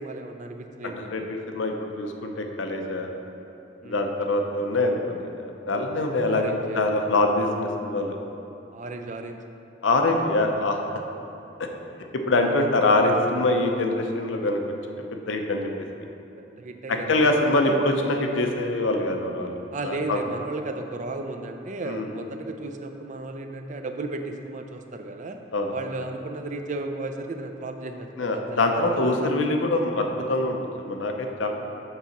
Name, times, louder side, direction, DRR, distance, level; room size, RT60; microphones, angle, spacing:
voice 1, 0.0-1.3 3.8-4.1 6.2-6.9 8.7-9.4 12.4-13.0 16.4-17.8 19.7-25.4 25.7-29.3, right 2 dB, 40° right, 5 dB, 0.4 m, -35 dB
voice 2, 0.8-3.1 3.8-8.2 9.8-10.8 12.3-14.6 15.1-15.7 16.9-19.6 19.8-20.2 21.8-22.1 25.5-25.7 28.2-31.5, left 2 dB, 80° left, 3 dB, 0.6 m, -24 dB
6.7 x 4.0 x 5.9 m, 2.9 s
head